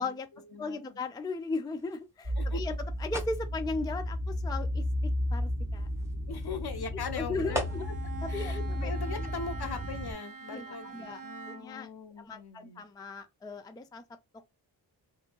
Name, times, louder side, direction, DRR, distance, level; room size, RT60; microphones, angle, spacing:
voice 1, 0.0-1.0 2.4-2.8 6.3-7.9 8.3-12.8, left 5 dB, 60° left, 0.6 m, -40 dB
voice 2, 0.6-2.7 3.0-5.9 7.1-7.8 8.2-9.3 10.5-11.2 11.5-11.9 12.2-14.0, left 3 dB, 10° left, 0.3 m, -37 dB
sound 1, 1.7-8.2, right 1 dB, 5° right, 0.8 m, -43 dB
sound 2, 2.2-10.1, left 1 dB, 35° right, 1.0 m, -33 dB
Bowed string instrument, 7.4-11.9, right 5 dB, 50° right, 0.6 m, -45 dB
2.7 x 2.6 x 2.8 m
wide cardioid pair, 65°, 45 cm